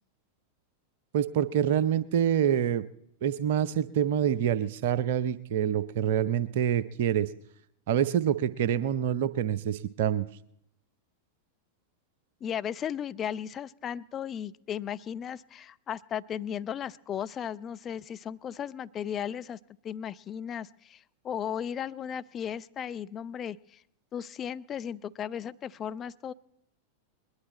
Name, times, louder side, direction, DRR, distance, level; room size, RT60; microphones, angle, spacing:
voice 1, 1.1-2.8 3.2-7.3 7.9-10.2, right 9 dB, 55° right, 16 dB, 0.6 m, -26 dB
voice 2, 12.4-19.6 19.8-23.8 24.1-26.3, left 9 dB, 25° left, 12 dB, 0.5 m, -36 dB
21.0 x 11.5 x 4.3 m, 0.75 s
figure-of-eight pair, 90°, 0 cm